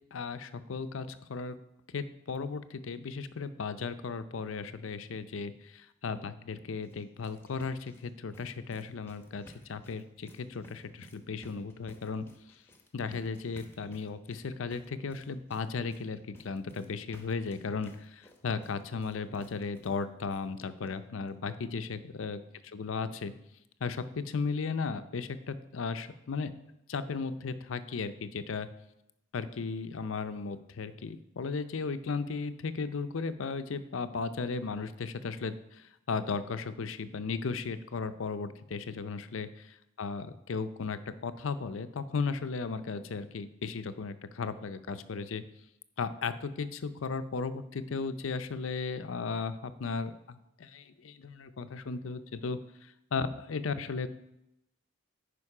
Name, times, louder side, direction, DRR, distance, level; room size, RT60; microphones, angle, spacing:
voice 1, 0.1-1.6 1.9-9.4 9.7-12.3 12.9-23.3 23.8-26.5 26.9-28.7 29.3-45.4 46.0-52.6 53.1-54.1, left 4 dB, 80° left, 12 dB, 0.6 m, -36 dB
sound 1, 6.8-20.0 20.3-20.4 20.9-21.0 21.3-21.4, equal, 10° left, 0.9 m, -56 dB
9.8 x 5.2 x 4.8 m, 0.84 s
head